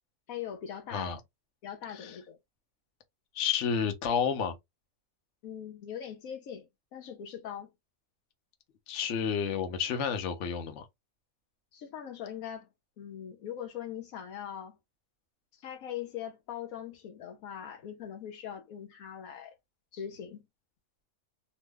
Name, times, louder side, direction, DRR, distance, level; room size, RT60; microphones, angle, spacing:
voice 1, 0.3-1.1 1.6-2.4 5.4-7.7 11.7-12.7 13.0-14.8 15.5-19.5 19.9-20.4, left 9 dB, 90° left, 1.2 m, -41 dB
voice 2, 3.3-4.6 8.9-10.9, left 7 dB, 60° left, 1.0 m, -30 dB
3.0 x 2.1 x 3.3 m
omnidirectional pair, 1.4 m